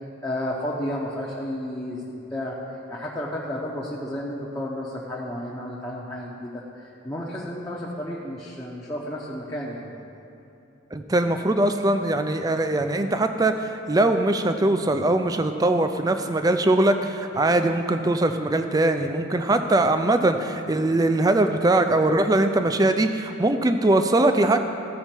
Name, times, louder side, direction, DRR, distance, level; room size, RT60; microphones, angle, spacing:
voice 1, 0.2-9.9, left 1 dB, 15° left, -6 dB, 0.8 m, -32 dB
voice 2, 10.9-24.6, right 2 dB, 20° right, 8 dB, 0.4 m, -21 dB
15.0 x 5.6 x 4.4 m, 2.7 s
head